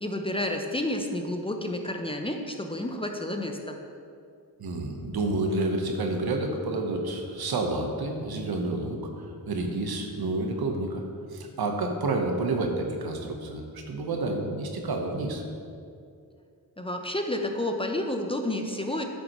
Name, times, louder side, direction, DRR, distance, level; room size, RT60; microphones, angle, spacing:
voice 1, 0.0-3.8 16.8-19.0, left 1 dB, 15° left, 4 dB, 0.6 m, -30 dB
voice 2, 4.6-9.0 9.5-11.0 11.3-15.4, right 2 dB, 75° right, 3 dB, 1.1 m, -29 dB
9.3 x 7.1 x 3.0 m, 2.4 s
cardioid pair, 80°, 38 cm